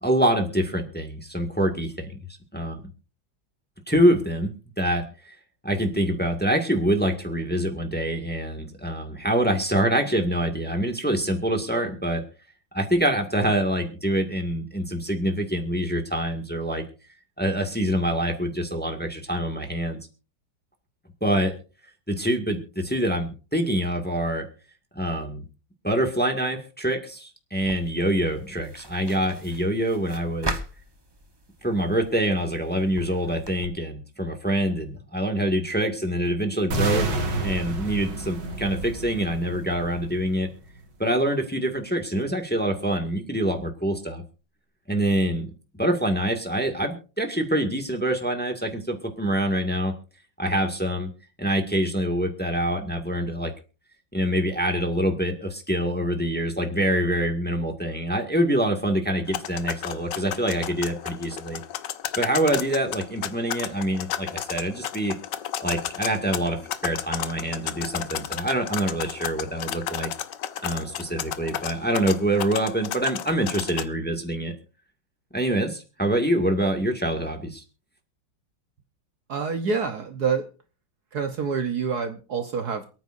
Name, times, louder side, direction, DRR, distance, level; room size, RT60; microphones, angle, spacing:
voice 1, 0.0-2.2 2.5-2.8 3.9-5.3 5.6-12.2 12.7-16.8 17.4-20.0 21.2-21.5 22.1-24.4 24.9-25.4 25.8-30.6 31.6-40.5 41.0-44.2 44.9-45.5 45.8-49.9 50.4-51.1 51.4-53.5 54.1-61.6 62.2-65.1 65.6-70.1 70.6-74.5 75.3-77.6, right 1 dB, 5° left, 3 dB, 1.7 m, -25 dB
sound 1, 27.6-33.7, right 1 dB, 20° right, 0.7 m, -39 dB
sound 2, 36.7-40.7, right 2 dB, 80° right, 2.7 m, -30 dB
sound 3, 59.3-73.8, left 11 dB, 70° left, 1.4 m, -33 dB
voice 2, 79.3-80.5 81.1-82.9, right 5 dB, 55° right, 7 dB, 1.4 m, -27 dB
28.0 x 9.3 x 2.6 m, 0.35 s
omnidirectional pair, 2.1 m